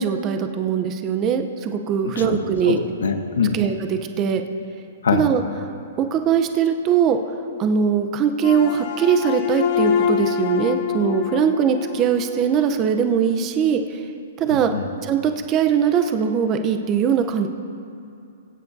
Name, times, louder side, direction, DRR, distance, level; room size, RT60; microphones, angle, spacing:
voice 1, 0.0-2.8 3.5-4.4 5.1-5.4 6.0-7.2 7.6-14.0 14.4-14.7 15.0-17.5, right 7 dB, 25° right, 7 dB, 0.7 m, -21 dB
voice 2, 2.0-3.6 5.0-5.3 14.7-14.9, left 5 dB, 90° left, 6 dB, 1.0 m, -23 dB
sound 1, 8.4-12.7, left 7 dB, 50° left, 1.1 m, -25 dB
24.0 x 8.1 x 2.7 m, 2.5 s
hypercardioid pair, 150°, 0 cm